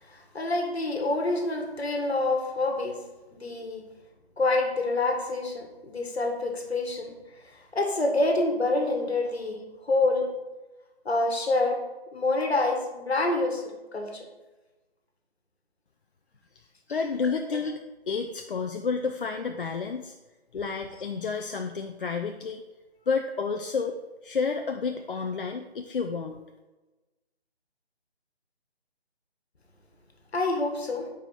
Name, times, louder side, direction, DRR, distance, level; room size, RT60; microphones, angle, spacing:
voice 1, 0.3-3.0 3.3-3.8 4.4-7.1 7.7-10.3 11.0-11.8 12.1-14.3 17.3-17.6 30.3-31.1, left 2 dB, 75° left, 2 dB, 1.4 m, -27 dB
voice 2, 16.9-17.8 18.1-20.2 20.5-22.6 23.1-24.0 24.2-26.4, left 5 dB, 55° left, 5 dB, 0.5 m, -30 dB
4.7 x 4.4 x 5.6 m, 1.1 s
figure-of-eight pair, 155°, 32 cm